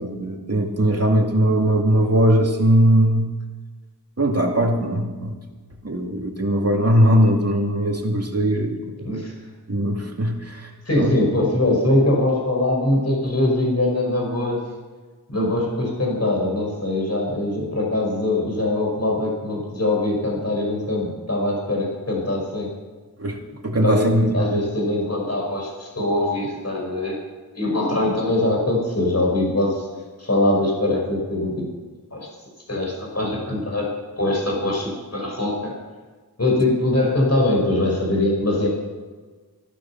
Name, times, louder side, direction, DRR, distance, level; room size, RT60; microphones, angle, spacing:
voice 1, 0.0-3.3 4.2-5.4 5.8-9.0 9.7-10.7 10.9-11.1 23.2-23.4 23.6-24.6, right 1 dB, 40° right, 1 dB, 2.4 m, -20 dB
voice 2, 10.9-14.7 15.3-22.7 23.7-27.2 27.5-29.9 30.2-31.7 32.1-32.3 32.7-35.8 36.4-38.7, left 1 dB, 40° left, 0 dB, 5.3 m, -22 dB
15.0 x 12.5 x 5.9 m, 1.3 s
wide cardioid pair, 55°, 39 cm